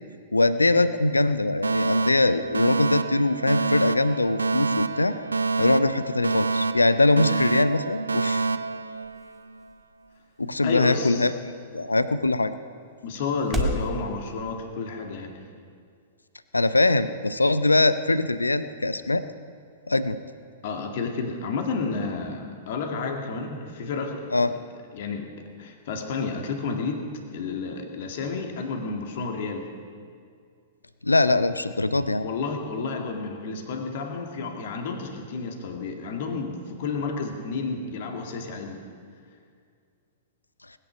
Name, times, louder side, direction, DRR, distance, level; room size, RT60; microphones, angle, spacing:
voice 1, 0.3-5.2 5.6-8.5 10.4-12.5 16.5-19.2 19.9-20.2 24.3-24.5 31.0-32.2, left 2 dB, 80° left, 13 dB, 0.6 m, -22 dB
Alarm, 1.6-9.6, right 3 dB, 80° right, 0.4 m, -27 dB
sound 1, 7.6-13.9, equal, 5° right, 1.8 m, -37 dB
voice 2, 10.6-11.3 13.0-15.4 20.6-24.6 24.9-25.3 25.6-29.7 32.2-38.9, left 4 dB, 50° left, 3 dB, 2.1 m, -31 dB
20.0 x 9.9 x 6.1 m, 2.2 s
figure-of-eight pair, 105°, 0 cm